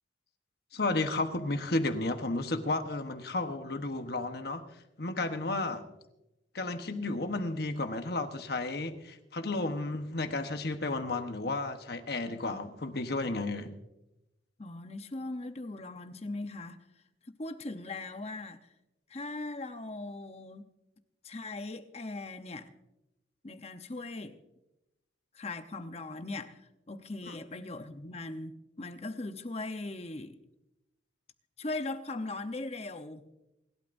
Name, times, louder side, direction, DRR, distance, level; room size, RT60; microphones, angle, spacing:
voice 1, 0.7-4.6 5.0-5.9 6.5-13.7 27.3-27.4, left 2 dB, 60° left, 1.2 m, -33 dB
voice 2, 14.6-16.8 17.2-18.6 19.1-20.7 21.2-22.7 23.4-24.4 25.3-30.4 31.6-33.2, left 2 dB, 35° left, 0.9 m, -39 dB
28.5 x 12.0 x 2.7 m
head